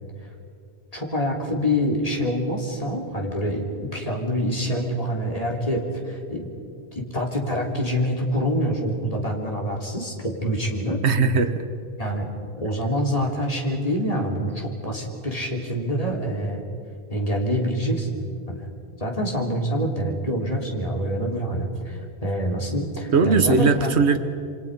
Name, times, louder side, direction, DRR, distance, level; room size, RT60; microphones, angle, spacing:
voice 1, 0.9-6.5 6.9-11.0 12.0-12.3 12.6-16.6 17.1-18.7 19.0-24.0, equal, 35° left, 0 dB, 3.6 m, -26 dB
voice 2, 11.0-11.6 23.1-24.2, right 4 dB, 80° right, 7 dB, 1.5 m, -19 dB
28.0 x 25.0 x 5.4 m, 2.6 s
omnidirectional pair, 1.1 m